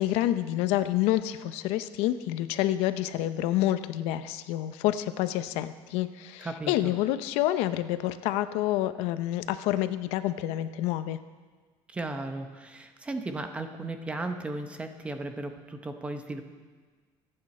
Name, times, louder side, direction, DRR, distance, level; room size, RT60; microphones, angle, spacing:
voice 1, 0.0-11.2, left 13 dB, 85° left, 12 dB, 0.7 m, -28 dB
voice 2, 6.4-6.9 11.9-16.4, right 2 dB, 10° right, 7 dB, 0.8 m, -35 dB
25.0 x 8.8 x 4.3 m, 1.5 s
cardioid pair, 180°, 10 cm